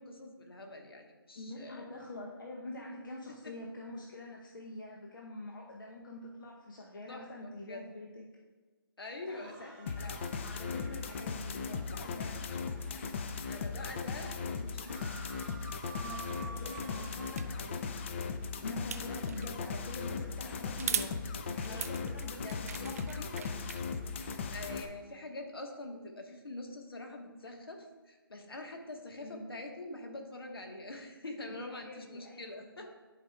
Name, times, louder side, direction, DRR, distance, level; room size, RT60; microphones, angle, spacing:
voice 1, 0.0-1.9 7.1-7.8 9.0-9.5 10.0-10.1 13.5-15.1 21.7-21.9 22.4-22.9 23.2-23.3 24.5-32.9, left 2 dB, 75° left, 3 dB, 1.5 m, -45 dB
voice 2, 1.3-8.3 9.3-12.5 15.9-17.9 18.6-21.1 21.4-23.7 29.2-29.5 31.5-32.9, left 2 dB, 60° left, -1 dB, 0.9 m, -46 dB
sound 1, 9.2-13.6 14.1-14.2 14.3-17.4, right 4 dB, 5° right, 0.8 m, -51 dB
sound 2, 9.9-24.9, left 5 dB, 30° left, 0.5 m, -38 dB
sound 3, 17.4-17.5 18.9-19.5 20.8-21.1 21.6-23.8, right 7 dB, 40° right, 0.4 m, -38 dB
10.5 x 5.1 x 2.4 m, 1.3 s
figure-of-eight pair, 150°, 13 cm